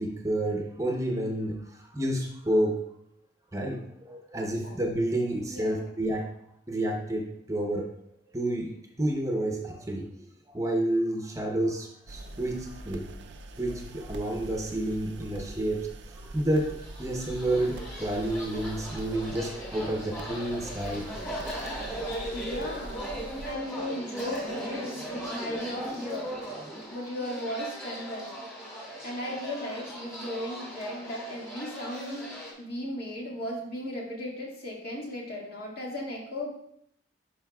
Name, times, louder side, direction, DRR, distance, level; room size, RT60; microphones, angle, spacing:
voice 1, 0.0-2.8 3.5-6.3 6.7-7.9 8.3-10.1 10.5-13.0 13.6-21.0, right 1 dB, 20° right, 1 dB, 0.8 m, -30 dB
sound 1, 12.1-23.5, right 1 dB, 70° right, 0.5 m, -43 dB
sound 2, 16.7-32.5, equal, 15° left, 2.4 m, -38 dB
voice 2, 22.3-23.1 23.4-26.3 26.9-28.4 29.0-36.5, left 1 dB, 60° left, -3 dB, 2.0 m, -36 dB
10.5 x 5.0 x 2.3 m, 0.71 s
head